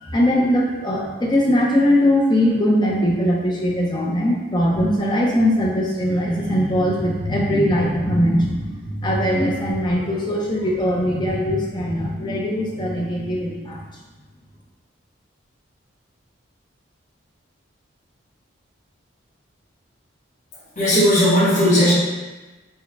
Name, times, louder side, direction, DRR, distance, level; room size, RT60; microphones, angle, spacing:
voice 1, 0.0-13.9, equal, 20° left, -2 dB, 0.5 m, -20 dB
voice 2, 20.7-21.9, equal, 40° left, -11 dB, 1.3 m, -16 dB
4.6 x 2.1 x 3.3 m, 1.2 s
head